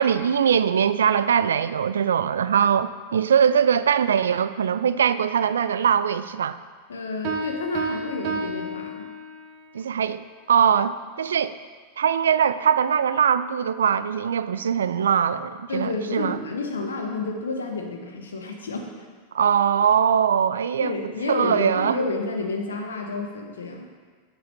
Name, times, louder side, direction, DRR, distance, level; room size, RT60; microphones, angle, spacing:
voice 1, 0.0-6.6 9.7-10.2 10.5-11.6 12.0-16.4 19.3-22.0, right 8 dB, 65° right, 14 dB, 0.3 m, -21 dB
voice 2, 6.9-9.1 15.7-18.9 20.8-23.9, left 3 dB, 70° left, 3 dB, 1.2 m, -30 dB
Piano, 7.2-9.6, right 2 dB, 45° right, 1.1 m, -31 dB
7.5 x 5.8 x 5.6 m, 1.5 s
figure-of-eight pair, 90°, 0 cm